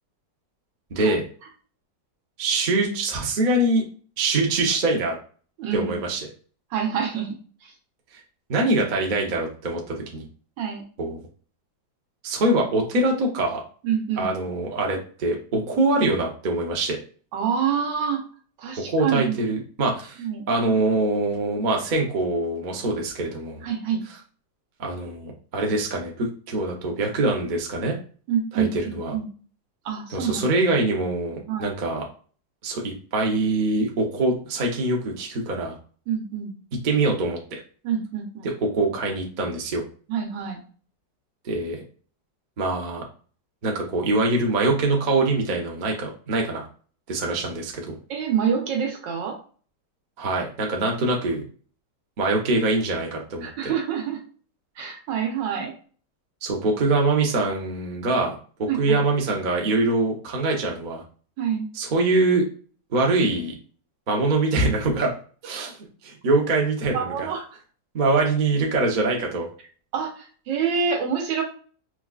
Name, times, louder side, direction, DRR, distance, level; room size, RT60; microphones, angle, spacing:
voice 1, 0.9-1.2 2.4-3.9 4.2-5.1 5.7-6.2 8.5-10.3 11.0-11.2 12.2-13.6 14.2-17.0 18.9-20.2 20.5-23.6 24.8-27.9 28.5-29.1 30.1-32.0 32.6-35.7 36.8-37.6 38.4-39.8 41.4-41.8 42.6-43.0 43.6-46.7 47.1-48.0 50.2-51.4 52.2-53.7 56.4-61.0 61.7-62.5 62.9-63.5 64.1-65.1 65.4-67.3 67.9-69.5, right 2 dB, 55° right, 0 dB, 0.5 m, -24 dB
voice 2, 5.6-6.0 6.7-7.3 10.6-10.8 13.8-14.3 17.3-18.2 18.6-19.4 20.2-20.4 23.6-24.0 28.3-29.3 29.8-30.5 31.5-31.7 36.1-36.5 37.8-38.5 40.1-40.6 48.1-49.4 53.4-54.2 54.8-55.7 58.7-59.0 61.4-61.7 66.9-67.4 69.9-71.4, right 7 dB, 90° right, 2 dB, 1.5 m, -26 dB
4.6 x 2.3 x 2.3 m, 0.41 s
omnidirectional pair, 1.9 m